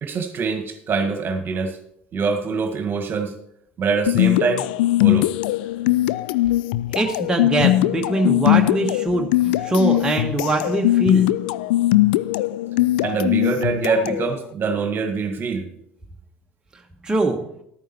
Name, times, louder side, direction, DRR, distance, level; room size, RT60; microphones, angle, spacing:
voice 1, 0.0-1.8 2.1-3.3 3.8-4.7 5.0-5.3 13.0-15.7, right 4 dB, 40° right, 7 dB, 1.7 m, -24 dB
sound 1, 4.1-14.3, left 15 dB, 65° left, 0.3 m, -20 dB
voice 2, 6.9-11.3 17.0-17.4, right 2 dB, 15° right, 1 dB, 1.4 m, -22 dB
12.0 x 9.1 x 4.4 m, 0.71 s
figure-of-eight pair, 60°, 6 cm